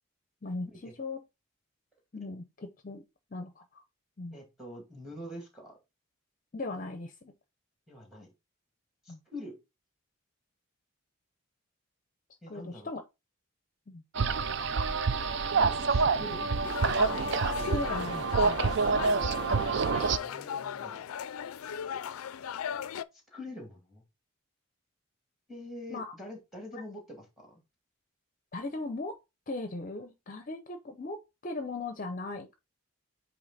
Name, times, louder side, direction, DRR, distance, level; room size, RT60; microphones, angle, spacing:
voice 1, 0.4-1.2 2.1-3.0 3.3-3.8 4.2-4.4 6.5-7.3 9.1-9.2 12.5-13.0 13.9-14.0 17.7-18.7 25.9-26.1 26.7-26.8 28.5-29.2 29.5-32.6, left 2 dB, 40° left, 0.6 m, -38 dB
voice 2, 4.3-5.8 7.9-8.3 9.0-9.6 12.4-12.9 15.5-17.2 20.2-21.0 23.3-24.0 25.5-27.6, left 1 dB, ahead, 2.0 m, -45 dB
sound 1, 14.1-20.2, right 4 dB, 55° right, 0.4 m, -27 dB
sound 2, 16.6-23.0, left 8 dB, 85° left, 0.4 m, -37 dB
8.4 x 2.9 x 4.0 m
head